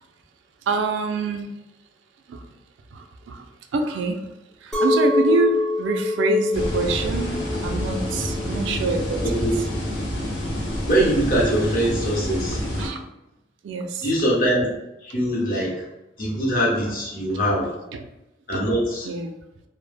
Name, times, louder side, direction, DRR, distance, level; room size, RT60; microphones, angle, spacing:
voice 1, 0.7-1.5 2.3-2.4 2.9-4.2 4.6-9.4 12.8-13.0 13.6-14.0 17.9-18.0 18.5-18.6 19.1-19.4, right 3 dB, 70° right, 5 dB, 0.3 m, -26 dB
Chink clink, 4.7-9.9, left 2 dB, 5° left, 0.4 m, -25 dB
sound 1, 6.5-12.9, equal, 85° left, 0.6 m, -28 dB
voice 2, 9.2-9.6 10.9-12.6 14.0-14.7 15.0-15.8 16.2-17.7 18.5-19.1, right 1 dB, 45° left, -4 dB, 0.7 m, -22 dB
2.0 x 2.0 x 3.2 m, 0.91 s
head